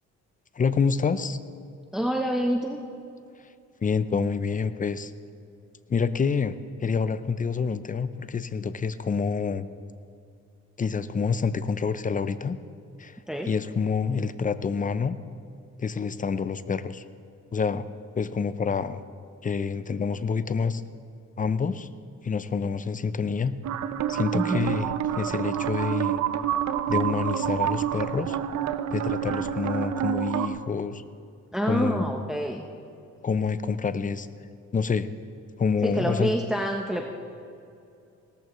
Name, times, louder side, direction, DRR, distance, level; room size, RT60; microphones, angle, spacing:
voice 1, 0.5-1.4 3.8-5.1 5.9-9.7 10.8-12.6 13.0-13.2 13.5-15.2 15.8-17.0 17.5-17.9 18.2-19.0 19.4-20.8 21.4-21.9 22.2-23.5 24.1-24.9 25.1-26.2 26.9-28.4 28.9-31.0 31.7-32.2 33.2-34.3 34.7-35.1 35.6-36.3, left 5 dB, 25° left, 13 dB, 0.6 m, -27 dB
voice 2, 1.9-2.8 13.3-13.5 24.3-24.7 31.5-32.7 35.8-37.1, equal, ahead, 2 dB, 0.9 m, -27 dB
sound 1, 23.6-30.5, right 10 dB, 65° right, 0.7 m, -28 dB
18.0 x 14.0 x 3.1 m, 2.6 s
cardioid pair, 90°, 30 cm